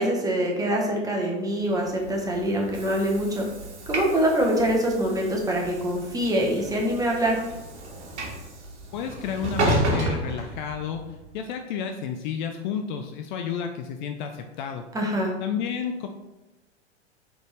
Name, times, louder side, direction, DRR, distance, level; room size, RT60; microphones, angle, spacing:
voice 1, 0.0-3.5 3.9-7.4 14.9-15.3, right 1 dB, 10° right, -1 dB, 0.9 m, -24 dB
Train / Sliding door, 1.9-11.2, right 1 dB, 80° right, 1.1 m, -32 dB
voice 2, 8.9-11.0 11.3-14.8 15.4-16.1, left 7 dB, 45° left, 5 dB, 0.4 m, -31 dB
4.0 x 3.4 x 3.2 m, 1.0 s
hypercardioid pair, 100°, 34 cm